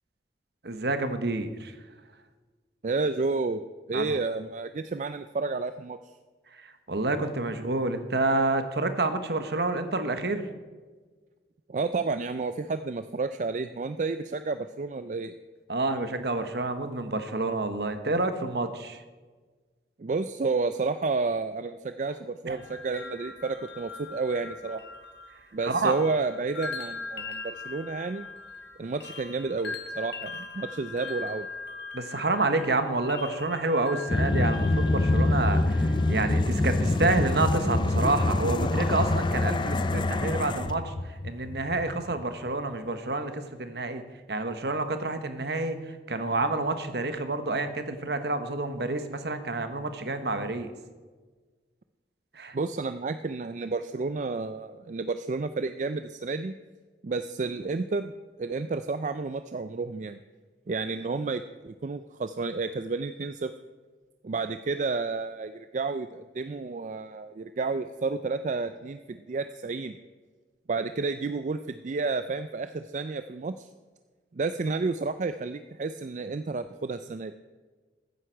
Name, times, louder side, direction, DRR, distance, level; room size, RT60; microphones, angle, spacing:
voice 1, 0.6-1.7 3.9-4.2 6.6-10.4 15.7-19.0 22.5-22.6 25.6-25.9 31.9-40.9 41.2-44.0 44.3-45.8 46.1-50.7 52.3-52.6, right 2 dB, 65° right, 9 dB, 1.1 m, -28 dB
voice 2, 2.8-3.6 3.9-6.0 11.7-15.3 20.0-24.8 25.5-28.3 28.8-31.5 52.5-56.5 57.0-58.1 58.4-60.2 60.7-63.5 64.2-70.0 70.7-73.7 74.3-77.3, right 3 dB, 45° right, 10 dB, 0.4 m, -31 dB
sound 1, 22.6-36.2, left 3 dB, 70° left, 1.6 m, -41 dB
sound 2, 34.1-42.2, left 2 dB, 25° left, 0.5 m, -25 dB
15.0 x 9.6 x 4.6 m, 1.4 s
head